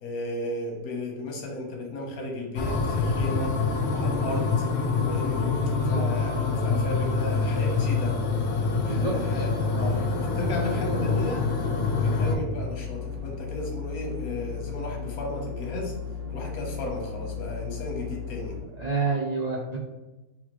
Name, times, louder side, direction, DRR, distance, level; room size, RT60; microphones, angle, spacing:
voice 1, 0.0-3.5 3.8-4.6 5.1-5.5 5.8-8.2 8.8-11.5 12.0-15.9 16.3-18.6, left 2 dB, 90° left, 0 dB, 1.4 m, -34 dB
sound 1, 2.6-12.4, left 4 dB, 60° left, 0.8 m, -26 dB
sound 2, 5.0-18.6, left 7 dB, 60° right, 1.1 m, -37 dB
voice 2, 8.8-9.4 18.8-19.8, right 4 dB, 85° right, -2 dB, 0.3 m, -29 dB
4.2 x 2.8 x 2.9 m, 1.1 s
omnidirectional pair, 1.5 m